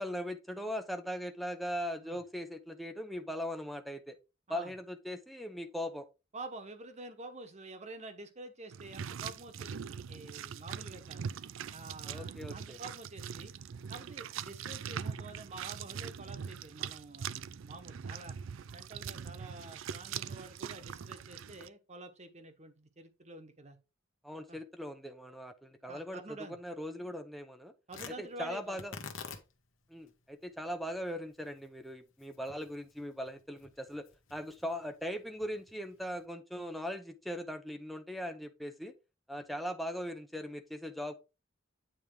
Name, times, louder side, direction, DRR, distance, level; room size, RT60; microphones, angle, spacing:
voice 1, 0.0-4.2 4.5-6.1 12.1-12.8 24.2-26.2 26.5-27.7 28.2-28.9 29.9-38.9 39.3-41.1, equal, ahead, 6 dB, 0.7 m, -40 dB
voice 2, 6.3-11.4 11.7-13.5 13.9-18.4 18.7-23.8 24.5-24.6 25.9-26.6 27.9-28.8 39.3-39.4, right 2 dB, 35° right, 7 dB, 1.2 m, -48 dB
sound 1, 8.7-21.7, right 7 dB, 75° right, 0.4 m, -42 dB
Tearing, 27.9-36.2, left 5 dB, 75° left, 1.1 m, -51 dB
9.1 x 3.5 x 4.7 m, 0.29 s
head